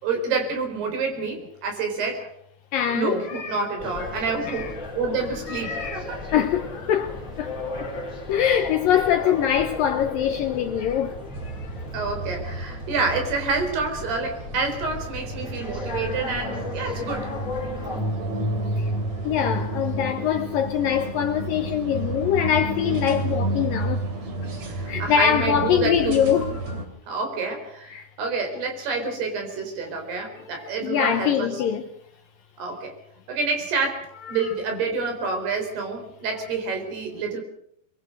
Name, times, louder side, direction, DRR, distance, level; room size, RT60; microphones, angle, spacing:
voice 1, 0.0-2.3 2.9-6.2 9.2-9.3 11.9-17.3 24.7-26.2 27.1-27.9 28.2-31.6 32.6-32.9 33.3-37.4, right 4 dB, 65° right, 6.2 m, -28 dB
voice 2, 2.7-3.6 4.0-4.1 4.4-4.7 5.5-6.0 6.3-8.0 8.3-11.7 18.3-18.4 18.8-18.9 19.2-24.0 24.9-26.8 27.9-28.1 30.8-31.8 34.3-34.5, left 9 dB, 70° left, 2.2 m, -24 dB
sound 1, 3.8-18.0, left 3 dB, 20° left, 4.4 m, -36 dB
sound 2, 11.3-26.8, right 1 dB, 45° right, 3.7 m, -31 dB
24.0 x 21.5 x 6.6 m
omnidirectional pair, 5.0 m